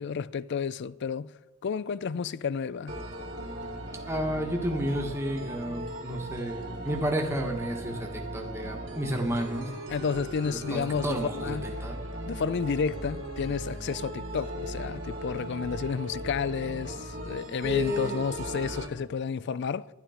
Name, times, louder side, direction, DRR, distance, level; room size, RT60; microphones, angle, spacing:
voice 1, 0.0-1.3 1.6-3.0 9.9-11.8 12.3-19.9, left 6 dB, 50° left, 0.4 m, -31 dB
sound 1, 2.9-18.9, right 1 dB, 55° right, 2.5 m, -38 dB
voice 2, 4.1-9.7 10.4-12.0 17.6-18.3, equal, 10° right, 1.4 m, -31 dB
12.0 x 11.0 x 5.0 m
head